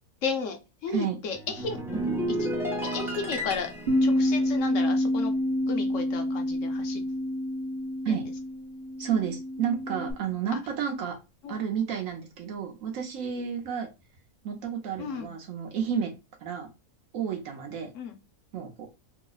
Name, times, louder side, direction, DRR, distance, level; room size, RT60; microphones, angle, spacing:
voice 1, 0.2-1.8 2.4-2.5 2.8-3.7 4.0-5.3 5.7-7.0 8.1-8.2 11.4-11.6 15.0-15.3 17.9-18.2, left 5 dB, 65° left, 5 dB, 0.9 m, -34 dB
sound 1, 1.3-6.0 6.2-6.6, right 1 dB, 5° right, 0.4 m, -33 dB
Bass guitar, 3.9-10.1, left 1 dB, 40° right, 0.7 m, -28 dB
voice 2, 9.0-11.2 11.5-13.9 14.4-16.1 16.4-16.7 17.1-17.9 18.5-18.9, right 7 dB, 65° right, 3 dB, 1.0 m, -31 dB
3.1 x 2.0 x 3.8 m, 0.26 s
omnidirectional pair, 1.6 m